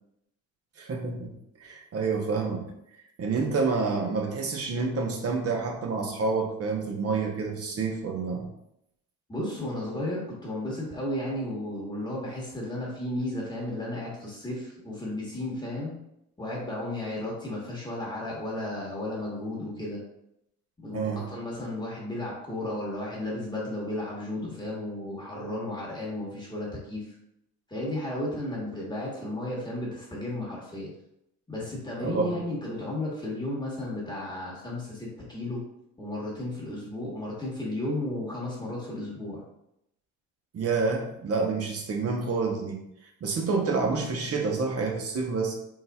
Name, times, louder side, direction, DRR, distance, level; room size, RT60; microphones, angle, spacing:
voice 1, 0.8-1.3 1.6-2.7 3.2-8.5 20.9-21.3 32.0-32.4 40.5-42.8 43.2-45.5, right 4 dB, 50° right, 2 dB, 0.9 m, -28 dB
voice 2, 9.3-16.0 16.4-20.0 20.8-27.1 27.7-30.9 31.5-35.6 36.0-39.4, left 1 dB, 15° left, -5 dB, 1.2 m, -34 dB
4.2 x 3.9 x 2.3 m, 0.81 s
cardioid pair, 90°, 30 cm